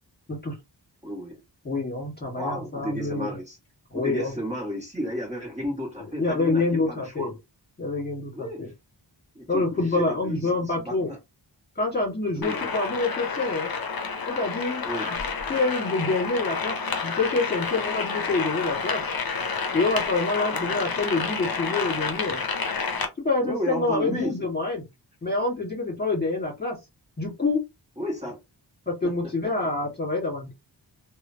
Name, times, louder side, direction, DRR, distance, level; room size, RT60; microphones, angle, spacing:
voice 1, 1.0-1.4 2.3-3.6 3.9-7.3 8.3-8.7 9.3-11.2 12.3-12.6 14.8-15.1 20.5-20.7 23.4-24.3 28.0-28.4 29.0-29.3, equal, 15° right, 1.4 m, -33 dB
voice 2, 1.6-3.3 3.9-4.3 6.2-7.3 7.8-8.7 9.5-11.1 11.7-13.7 14.3-14.8 15.5-19.0 19.7-22.4 23.2-24.8 25.2-26.8 27.2-27.6 28.9-30.5, left 3 dB, 20° left, 1.5 m, -26 dB
sound 1, 12.4-23.1, left 5 dB, 55° left, 0.6 m, -29 dB
3.0 x 2.2 x 2.7 m
wide cardioid pair, 70°, 44 cm